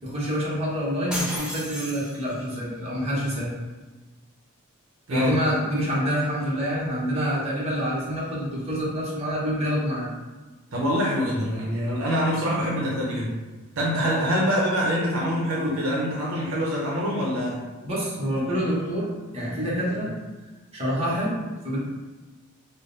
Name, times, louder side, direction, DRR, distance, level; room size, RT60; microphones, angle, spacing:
voice 1, 0.0-3.5 5.1-10.1 17.8-20.1 20.7-21.8, equal, 30° right, -7 dB, 1.1 m, -27 dB
sound 1, 1.1-2.6, equal, 5° right, 0.6 m, -33 dB
voice 2, 5.1-5.4 10.7-13.3 13.8-17.6, equal, 70° right, -4 dB, 0.7 m, -25 dB
3.7 x 2.1 x 3.9 m, 1.2 s
head